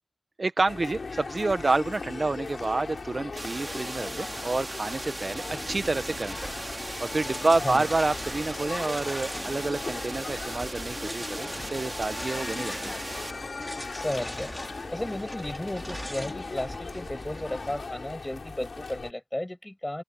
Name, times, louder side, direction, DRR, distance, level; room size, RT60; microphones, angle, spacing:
voice 1, 0.4-6.5 7.0-12.9, right 3 dB, 55° right, 1.2 m, -28 dB
sound 1, 0.7-19.1, left 4 dB, 75° left, 3.1 m, -38 dB
sound 2, 3.4-13.3, right 2 dB, 35° right, 3.5 m, -38 dB
sound 3, 5.6-17.8, equal, ahead, 4.7 m, -42 dB
voice 2, 13.9-14.5 14.9-20.0, left 1 dB, 20° left, 6.3 m, -34 dB
open air
cardioid pair, 50°, 0 cm